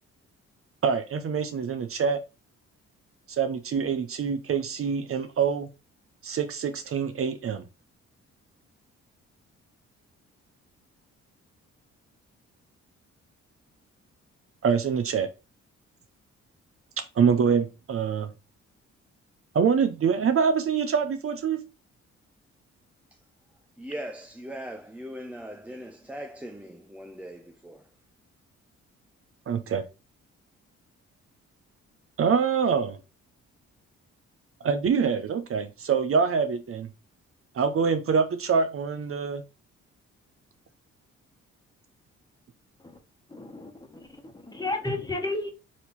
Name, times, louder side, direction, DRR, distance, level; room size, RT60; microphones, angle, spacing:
voice 1, 0.8-2.2 3.3-5.7 6.2-7.6 14.6-15.3 17.2-18.3 19.5-21.6 29.5-29.9 32.2-33.0 34.6-36.9 37.5-39.4, right 6 dB, 50° right, 0.6 m, -25 dB
voice 2, 23.8-27.9, equal, 5° right, 0.4 m, -40 dB
voice 3, 43.3-44.1 44.4-45.5, left 2 dB, 15° left, 1.2 m, -32 dB
4.3 x 2.8 x 4.0 m
cardioid pair, 70°, 29 cm